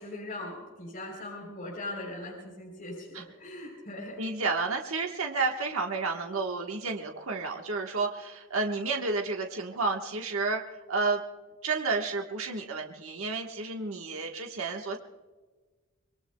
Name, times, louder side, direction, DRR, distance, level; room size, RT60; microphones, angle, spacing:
voice 1, 0.0-4.2, left 2 dB, 40° left, -2 dB, 3.6 m, -40 dB
voice 2, 4.2-10.6 10.9-11.2 11.6-15.0, right 3 dB, 80° right, 2 dB, 1.2 m, -31 dB
25.0 x 22.0 x 2.2 m, 1.3 s
head